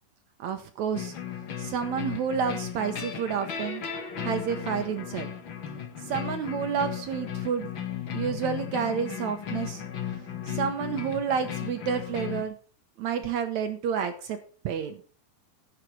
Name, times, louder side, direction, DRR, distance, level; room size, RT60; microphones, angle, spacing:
voice 1, 0.4-1.1 1.6-3.8 4.2-5.3 6.0-7.7 8.1-9.8 10.5-12.5 13.0-14.4 14.6-15.0, right 7 dB, 75° right, 7 dB, 1.7 m, -30 dB
sound 1, 0.9-12.4, left 9 dB, 45° left, 1.6 m, -35 dB
11.0 x 9.1 x 4.6 m, 0.39 s
omnidirectional pair, 4.5 m